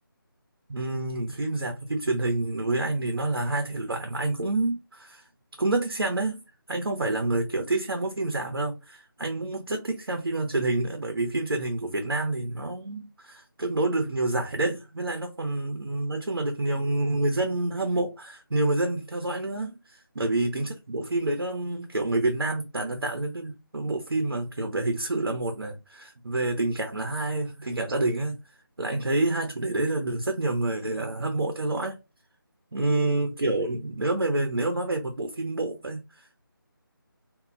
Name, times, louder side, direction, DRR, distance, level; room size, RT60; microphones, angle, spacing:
voice 1, 0.7-5.2 5.6-6.4 6.7-28.4 28.8-32.0 32.7-36.4, right 2 dB, 75° right, 0.6 m, -28 dB
2.2 x 2.0 x 3.7 m
figure-of-eight pair, 160°, 12 cm